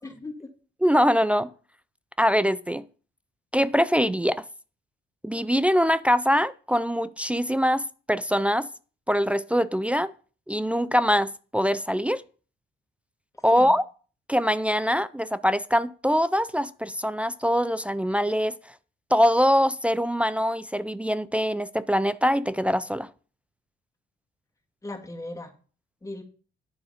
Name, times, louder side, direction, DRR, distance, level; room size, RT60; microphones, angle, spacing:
voice 1, 0.0-0.5 13.5-13.7 24.8-25.5 26.0-26.2, left 2 dB, 15° left, 2.6 m, -38 dB
voice 2, 0.8-1.5 2.2-2.8 3.5-4.4 5.2-8.7 9.1-10.1 10.5-12.2 13.4-13.8 14.3-18.6 19.1-23.1, equal, 5° right, 0.4 m, -23 dB
9.9 x 7.0 x 5.2 m
cardioid pair, 90°, 20 cm